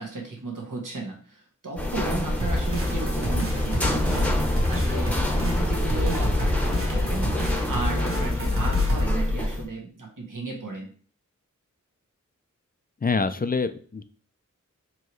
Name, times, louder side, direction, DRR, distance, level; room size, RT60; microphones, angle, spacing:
voice 1, 0.0-10.9, right 3 dB, 75° right, -1 dB, 1.3 m, -35 dB
sound 1, 1.8-9.6, left 1 dB, 5° left, 0.9 m, -26 dB
sound 2, 2.4-9.1, left 1 dB, 45° right, 1.0 m, -28 dB
voice 2, 13.0-14.0, left 4 dB, 30° left, 11 dB, 0.4 m, -25 dB
4.6 x 3.1 x 3.1 m, 0.43 s
wide cardioid pair, 45°, 32 cm